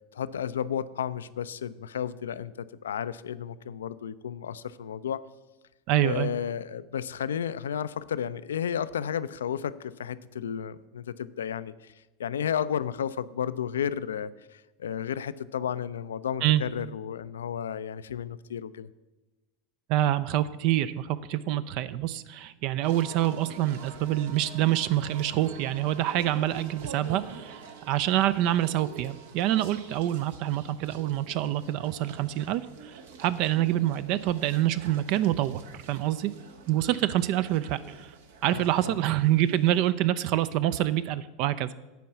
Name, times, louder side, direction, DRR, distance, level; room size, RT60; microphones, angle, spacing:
voice 1, 0.1-5.2 6.0-11.9 12.2-18.9 38.5-39.0, left 8 dB, 75° left, 16 dB, 0.3 m, -33 dB
voice 2, 5.9-6.3 16.4-16.6 19.9-36.3 36.7-38.1 38.4-41.7, right 13 dB, 55° right, 15 dB, 0.3 m, -26 dB
sound 1, 22.8-39.9, right 5 dB, 70° right, 0.9 m, -47 dB
9.2 x 4.6 x 7.0 m, 1.1 s
figure-of-eight pair, 85°, 0 cm